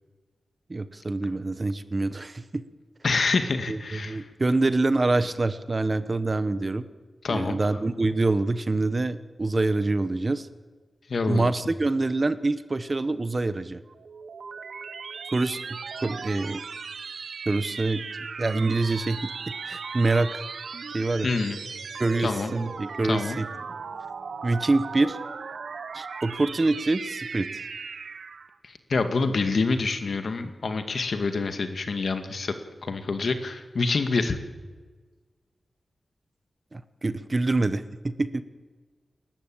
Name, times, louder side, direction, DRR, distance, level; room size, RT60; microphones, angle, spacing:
voice 1, 0.7-2.6 3.7-6.8 7.3-10.5 11.3-13.8 15.3-15.6 16.0-16.6 17.5-18.1 18.4-19.3 19.7-20.4 20.9-21.3 22.0-23.5 24.4-25.2 25.9-27.6 36.7-38.4, right 2 dB, 30° right, 13 dB, 0.9 m, -25 dB
voice 2, 3.0-4.3 7.2-7.6 11.1-11.5 21.2-21.6 22.2-22.5 23.0-23.4 28.6-32.5 32.8-34.4, left 4 dB, 55° left, 8 dB, 2.1 m, -27 dB
sound 1, 13.9-28.6, right 5 dB, 70° right, 1.1 m, -37 dB
29.5 x 13.5 x 8.8 m, 1.4 s
wide cardioid pair, 150°, 0 cm